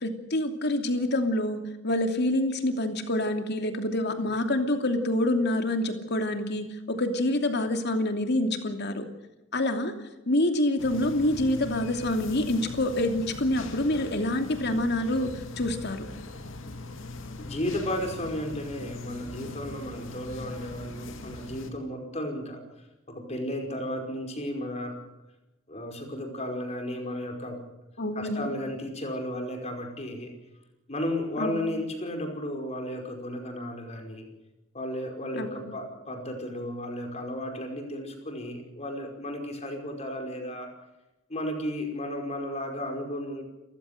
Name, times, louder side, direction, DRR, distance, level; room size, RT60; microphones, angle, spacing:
voice 1, 0.0-9.0 9.5-9.9 10.3-15.3 15.6-16.1 28.0-28.5 31.4-31.6 35.3-35.8, left 1 dB, 60° left, 6 dB, 2.8 m, -27 dB
sound 1, 10.8-21.7, left 2 dB, 80° left, 2.5 m, -41 dB
voice 2, 17.4-22.6 23.1-25.0 25.7-27.6 28.2-30.3 30.9-34.3 34.7-40.7 41.3-43.4, left 1 dB, 35° left, 3 dB, 5.2 m, -34 dB
29.5 x 15.5 x 6.7 m, 1.0 s
head